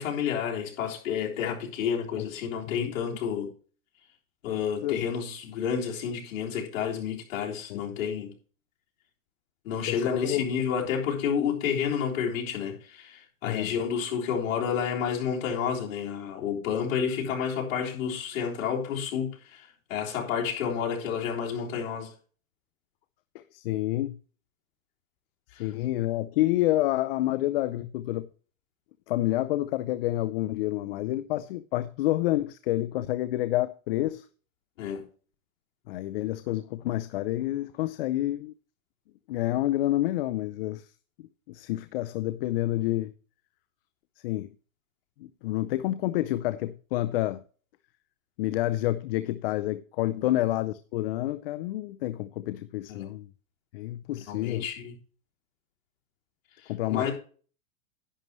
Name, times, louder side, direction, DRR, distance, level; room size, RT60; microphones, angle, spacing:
voice 1, 0.0-3.5 4.4-8.3 9.6-22.1 25.5-25.7 34.8-35.0 50.2-50.3 52.9-53.0 54.3-54.9 56.9-57.1, left 7 dB, 65° left, 3.8 m, -30 dB
voice 2, 9.9-10.4 13.4-13.7 23.3-24.2 25.6-28.3 29.1-34.3 35.9-38.5 39.3-40.8 41.5-43.1 44.2-44.5 45.2-47.4 48.4-53.3 53.7-54.7 56.7-57.1, left 15 dB, 45° left, 0.5 m, -28 dB
11.0 x 9.4 x 3.1 m
supercardioid pair, 160°, 42 cm